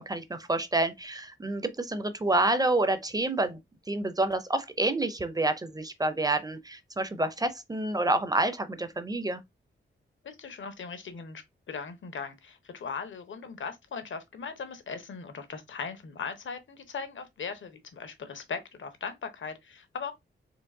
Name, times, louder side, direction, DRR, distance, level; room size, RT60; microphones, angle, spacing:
voice 1, 0.0-3.6 3.9-9.4, right 2 dB, 20° right, 0.5 m, -28 dB
voice 2, 10.2-20.1, left 5 dB, 70° left, 0.9 m, -39 dB
4.5 x 3.0 x 2.6 m
wide cardioid pair, 150°, 21 cm